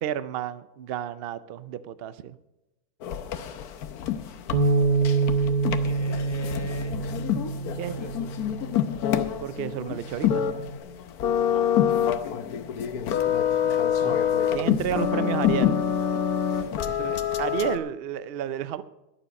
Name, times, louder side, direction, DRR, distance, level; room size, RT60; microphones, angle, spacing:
voice 1, 0.0-2.4 7.8-8.0 9.4-10.4 13.6-14.2 14.5-15.8 16.9-18.8, right 10 dB, 60° right, 14 dB, 0.6 m, -31 dB
sound 1, 3.0-17.8, left 9 dB, 80° left, 1.3 m, -26 dB
Bass guitar, 4.5-8.9 9.6-10.8, right 4 dB, 35° right, 1.0 m, -27 dB
voice 2, 5.8-7.0 7.5-8.3 11.5-11.7 12.0-12.4 16.7-17.3, left 4 dB, 20° left, 5 dB, 1.4 m, -42 dB
21.0 x 7.2 x 5.3 m, 0.98 s
omnidirectional pair, 1.6 m